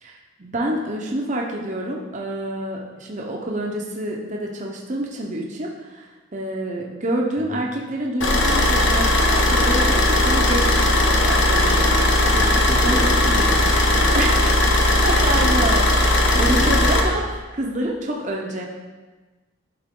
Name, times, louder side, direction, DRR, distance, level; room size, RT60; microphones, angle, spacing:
voice 1, 0.0-11.9 12.2-13.0 14.1-18.7, right 1 dB, 35° right, -1 dB, 0.7 m, -28 dB
Car / Idling, 8.2-17.0, left 1 dB, 65° left, 1.0 m, -18 dB
voice 2, 12.3-14.2 16.3-16.7, equal, 15° left, -4 dB, 0.7 m, -31 dB
11.0 x 4.1 x 3.7 m, 1.2 s
head